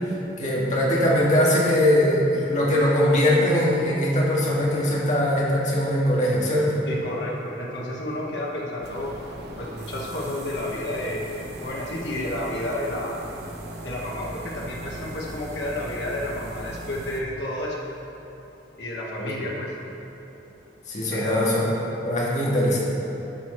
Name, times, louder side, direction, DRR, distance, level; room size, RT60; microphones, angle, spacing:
voice 1, 0.4-6.8 19.2-19.3 20.9-22.8, left 1 dB, 45° left, -5 dB, 1.8 m, -21 dB
voice 2, 6.9-9.2 9.6-13.2 13.8-17.8 18.8-19.7 21.1-21.5, left 1 dB, 80° left, -3 dB, 1.2 m, -31 dB
sound 1, 8.8-17.2, right 2 dB, 65° right, 0.9 m, -39 dB
11.5 x 6.1 x 4.4 m, 3.0 s
head